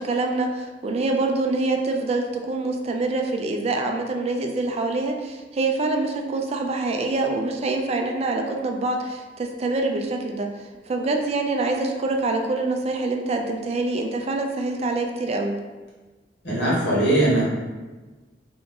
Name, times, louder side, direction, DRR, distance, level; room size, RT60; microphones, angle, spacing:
voice 1, 0.0-15.6, right 2 dB, 35° right, 3 dB, 0.3 m, -25 dB
voice 2, 16.4-17.4, right 1 dB, 85° left, -7 dB, 1.3 m, -20 dB
2.9 x 2.4 x 3.6 m, 1.3 s
head